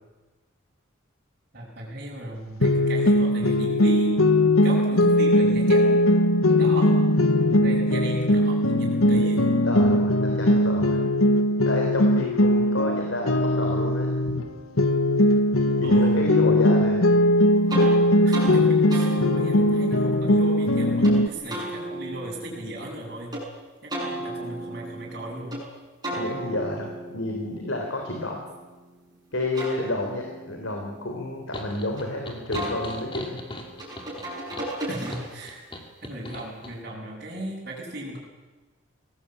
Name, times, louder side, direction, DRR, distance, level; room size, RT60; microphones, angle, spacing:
voice 1, 1.5-4.4 4.6-6.0 6.5-7.0 7.5-9.4 15.8-16.2 18.2-23.4 23.8-25.6 34.8-35.6 36.0-38.2, right 1 dB, 45° right, -7 dB, 6.6 m, -36 dB
sound 1, 2.6-14.5 14.8-21.3, left 1 dB, 90° left, 1.6 m, -20 dB
voice 2, 9.6-11.0 11.7-14.1 15.8-17.0 26.1-28.4 29.3-33.4, left 2 dB, 70° left, 2 dB, 3.9 m, -30 dB
sound 2, 17.7-17.9 18.3-18.5 18.9-21.2 21.5-23.4 23.9-25.6 26.0-28.9 29.3-32.0 32.5-35.5, right 1 dB, 20° right, 7.6 m, -36 dB
sound 3, 31.5-36.8, left 1 dB, 25° left, 2.8 m, -40 dB
24.0 x 18.5 x 8.8 m, 1.2 s
head